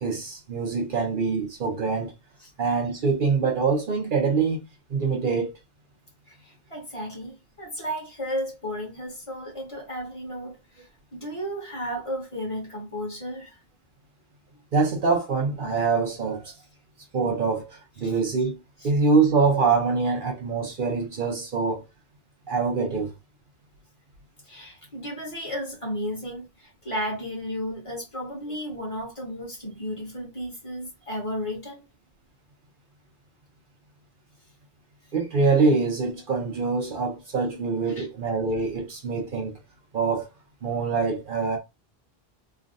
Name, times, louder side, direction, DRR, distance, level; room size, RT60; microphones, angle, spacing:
voice 1, 0.0-2.1 2.6-4.6 4.9-5.5 14.7-16.5 17.1-18.5 18.8-21.8 22.5-23.1 35.1-39.5 39.9-40.3 40.6-41.6, right 4 dB, 60° right, 0.8 m, -24 dB
voice 2, 6.3-10.9 11.1-13.6 18.0-18.2 18.8-18.9 24.4-31.8 37.9-38.1, equal, 30° left, 1.4 m, -34 dB
3.2 x 2.4 x 2.6 m
omnidirectional pair, 1.0 m